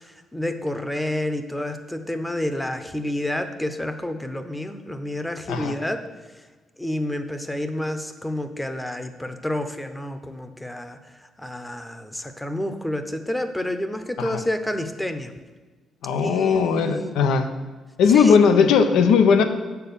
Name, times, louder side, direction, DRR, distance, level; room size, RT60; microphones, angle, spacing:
voice 1, 0.0-6.1 6.4-6.5 6.8-15.3 16.2-17.1 18.1-18.4, left 1 dB, 10° left, 8 dB, 0.7 m, -29 dB
voice 2, 16.0-17.5 18.0-19.4, left 6 dB, 90° left, 7 dB, 0.7 m, -18 dB
7.2 x 4.5 x 6.8 m, 1.3 s
cardioid pair, 90°, 0 cm